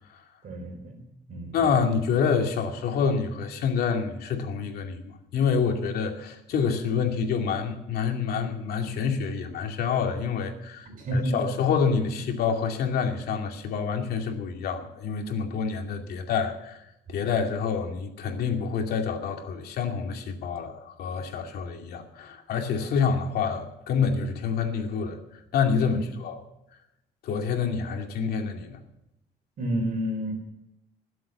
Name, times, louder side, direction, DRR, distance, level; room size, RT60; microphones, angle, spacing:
voice 1, 0.4-1.0 1.3-1.6 10.9-11.4 25.9-26.0 29.6-30.3, equal, 55° right, 2 dB, 4.0 m, -30 dB
voice 2, 1.5-16.8 17.1-25.2 25.5-26.4 27.2-28.8, left 6 dB, 65° left, 3 dB, 2.5 m, -27 dB
20.5 x 7.8 x 6.9 m, 0.86 s
cardioid pair, 110°, 17 cm